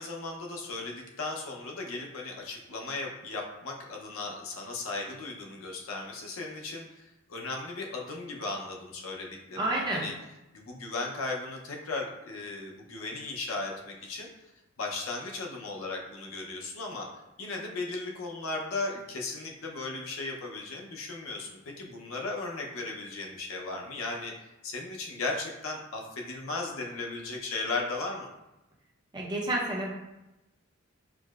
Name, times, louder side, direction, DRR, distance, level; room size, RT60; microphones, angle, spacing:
voice 1, 0.0-10.1 10.5-14.3 14.8-17.1 17.4-24.3 24.6-28.3, left 3 dB, 85° left, 0 dB, 0.6 m, -36 dB
voice 2, 9.6-10.1 29.1-29.9, right 1 dB, 20° right, -3 dB, 0.5 m, -29 dB
4.7 x 2.0 x 2.3 m, 0.96 s
head